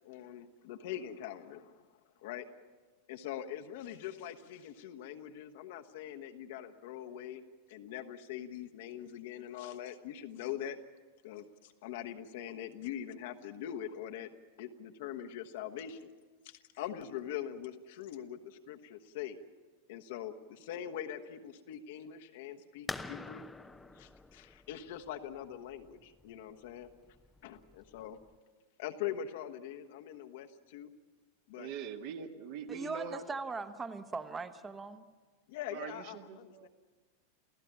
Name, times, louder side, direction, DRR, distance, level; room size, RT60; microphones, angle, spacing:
voice 1, 0.0-1.8 2.2-2.5 3.1-7.4 7.7-10.8 11.2-14.3 14.6-16.1 16.4-19.4 19.9-23.5 24.0-26.9 27.4-28.2 28.8-30.9 31.5-31.7 35.5-36.7, left 10 dB, 50° left, 5 dB, 1.2 m, -43 dB
sound 1, 22.9-28.4, left 2 dB, 10° left, 0.8 m, -47 dB
voice 2, 31.5-33.2 35.7-36.7, right 7 dB, 50° right, 5 dB, 1.7 m, -43 dB
voice 3, 32.7-35.0, right 4 dB, 15° right, 11 dB, 1.2 m, -40 dB
28.5 x 16.0 x 7.3 m, 1.4 s
figure-of-eight pair, 90°, 0 cm